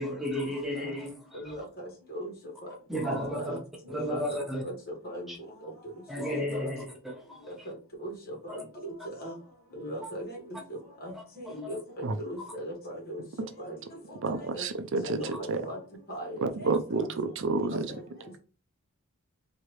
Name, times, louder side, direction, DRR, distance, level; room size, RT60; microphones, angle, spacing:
voice 1, 0.0-1.5 2.9-3.6 3.9-4.6 5.3-5.4 6.1-7.4 8.5-8.6 10.0-10.1 11.1-11.8 12.4-12.5, equal, ahead, 0.9 m, -34 dB
voice 2, 1.3-2.3 2.6-2.7 3.3-3.6 3.8-5.3 5.6-5.7 6.2-6.7 7.7-9.4 9.7-10.6 11.0-13.8 14.1-14.2 14.5-14.7 15.0-15.8 16.1-16.7 17.0-17.1 17.7-18.0, equal, 45° left, 2.1 m, -39 dB
voice 3, 14.2-15.2 15.5-15.6 16.4-17.9, right 3 dB, 60° right, 0.6 m, -29 dB
4.5 x 3.0 x 3.2 m
head